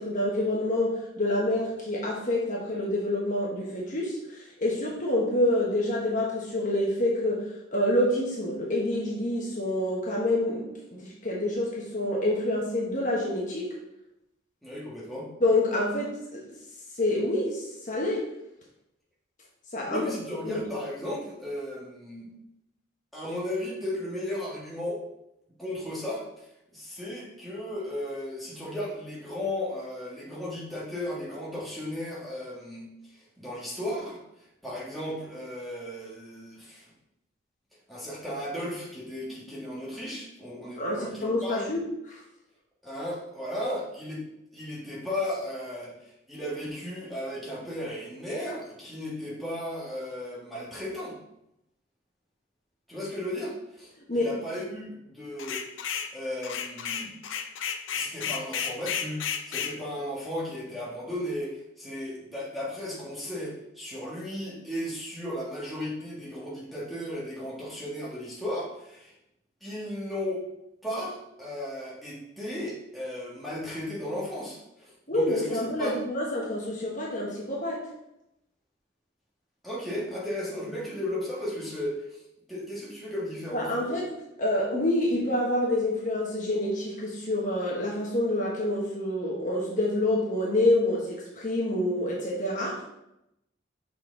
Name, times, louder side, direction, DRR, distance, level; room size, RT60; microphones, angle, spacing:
voice 1, 0.0-7.4 7.7-10.7 11.0-13.7 15.4-16.4 17.0-18.3 19.7-20.0 20.4-20.6 40.8-42.2 54.1-54.3 75.1-77.8 83.5-84.1 84.4-92.8, left 1 dB, 40° left, -4 dB, 1.2 m, -27 dB
voice 2, 14.6-15.3 19.8-22.3 23.1-25.0 25.6-26.2 26.7-34.2 34.6-36.9 37.9-41.7 42.8-44.2 44.5-51.2 52.9-55.6 56.1-57.2 57.9-69.1 69.6-70.4 70.8-76.0 79.6-82.2 82.5-84.0, left 1 dB, ahead, -7 dB, 1.5 m, -35 dB
sound 1, 55.4-56.1 56.4-59.8, left 7 dB, 75° left, 0.5 m, -32 dB
5.9 x 4.2 x 3.8 m, 0.84 s
head